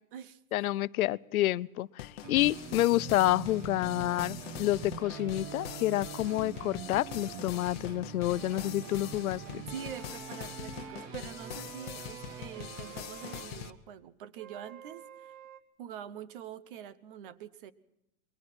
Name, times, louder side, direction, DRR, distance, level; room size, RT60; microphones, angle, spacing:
voice 1, 0.5-9.6, left 15 dB, 85° left, 20 dB, 0.7 m, -29 dB
sound 1, 2.0-13.7, left 13 dB, 45° left, 1.0 m, -44 dB
sound 2, 2.2-13.7, right 6 dB, 20° right, 1.2 m, -45 dB
sound 3, 2.9-7.5 8.2-13.5 14.4-15.6, right 9 dB, 90° right, 2.0 m, -50 dB
voice 2, 9.7-15.3 15.8-17.7, right 9 dB, 40° right, 16 dB, 1.0 m, -45 dB
28.5 x 22.0 x 4.4 m, 0.82 s
supercardioid pair, 180°, 42 cm